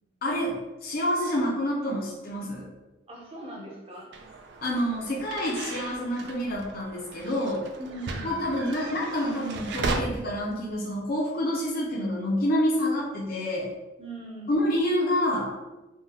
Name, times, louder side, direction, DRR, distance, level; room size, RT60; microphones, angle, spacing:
voice 1, 0.2-2.7 4.6-7.7 8.2-13.7 14.5-15.5, equal, 50° left, -4 dB, 0.5 m, -28 dB
voice 2, 3.1-4.1 7.8-8.4 14.0-14.6, right 1 dB, 30° right, -3 dB, 0.7 m, -40 dB
sound 1, 4.1-10.0, right 3 dB, 60° right, 0.3 m, -36 dB
3.6 x 2.2 x 2.7 m, 1.1 s
head